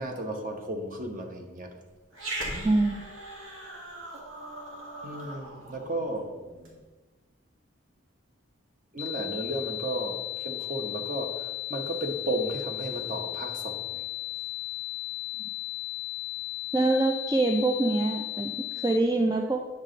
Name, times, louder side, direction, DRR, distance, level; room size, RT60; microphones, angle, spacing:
voice 1, 0.0-1.7 5.0-6.3 8.9-14.0, right 1 dB, 40° right, 0.9 m, -34 dB
Growling, 2.1-6.8, right 1 dB, 85° right, 1.9 m, -39 dB
voice 2, 2.6-3.0 16.7-19.6, right 2 dB, 20° right, 0.4 m, -25 dB
sound 1, 9.0-19.0, left 20 dB, 75° left, 0.4 m, -35 dB
8.9 x 6.5 x 3.9 m
head